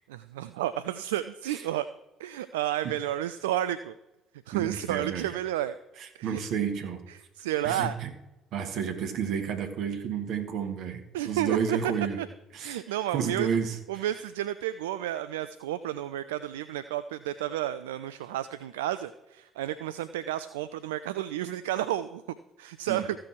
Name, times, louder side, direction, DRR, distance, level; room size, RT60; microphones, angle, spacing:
voice 1, 0.1-1.9 2.2-3.9 4.5-5.7 6.2-6.4 7.4-8.0 11.1-11.8 12.2-12.3 12.6-13.5 13.9-22.2 22.6-23.2, right 12 dB, 75° right, 13 dB, 0.3 m, -31 dB
voice 2, 4.5-5.3 6.0-7.0 7.6-8.1 8.5-12.2 12.5-12.8 13.1-14.1 22.9-23.1, right 7 dB, 60° right, 6 dB, 1.3 m, -31 dB
14.5 x 6.2 x 4.5 m, 0.98 s
figure-of-eight pair, 50°, 0 cm